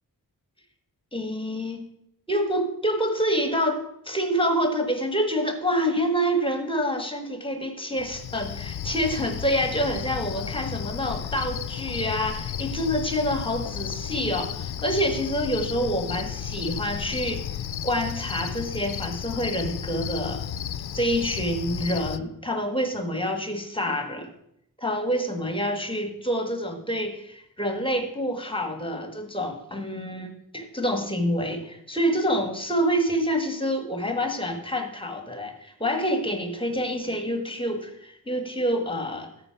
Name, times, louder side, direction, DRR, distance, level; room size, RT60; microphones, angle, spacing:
voice 1, 1.1-1.8 2.3-17.4 17.8-20.4 20.9-24.3 24.8-39.3, equal, 15° left, 5 dB, 1.5 m, -27 dB
Cricket, 8.0-22.2, left 9 dB, 90° left, 0.6 m, -33 dB
13.0 x 5.1 x 5.8 m, 0.77 s
wide cardioid pair, 85°, 37 cm